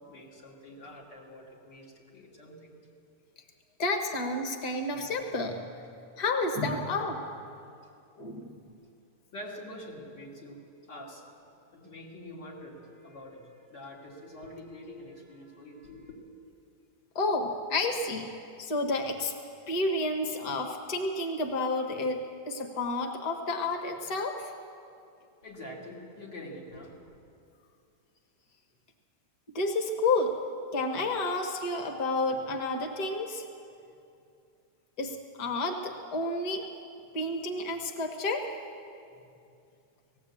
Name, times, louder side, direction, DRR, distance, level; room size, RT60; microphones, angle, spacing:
voice 1, 0.0-2.7 9.3-10.6 10.9-11.2 11.7-16.2 25.4-27.2, left 1 dB, 90° left, -4 dB, 3.7 m, -45 dB
voice 2, 3.8-5.6 6.2-7.2 8.2-8.6 17.2-18.3 18.6-19.3 19.7-24.5 29.6-30.3 30.7-33.4 35.0-36.7 37.1-38.6, left 2 dB, 60° left, 4 dB, 1.9 m, -30 dB
18.5 x 16.5 x 8.5 m, 2.5 s
omnidirectional pair, 1.8 m